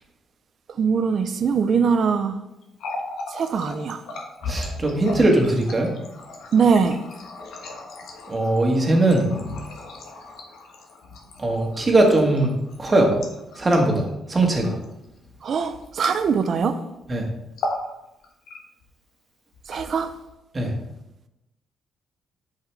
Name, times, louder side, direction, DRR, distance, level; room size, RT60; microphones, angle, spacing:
voice 1, 0.8-2.4 3.3-4.0 6.5-7.0 15.4-16.8 19.7-20.1, right 6 dB, 55° right, 0.6 m, -21 dB
Water tap faucet, 2.6-16.7 16.9-17.1 17.5-17.9 18.2-18.9 19.5-20.3, left 2 dB, 80° left, 1.3 m, -36 dB
voice 2, 4.5-5.9 8.3-9.3 11.4-13.1 13.6-14.7 17.1-17.3 20.5-20.7, right 2 dB, 30° right, 1.6 m, -20 dB
7.2 x 5.5 x 3.5 m
cardioid pair, 90°, 0 cm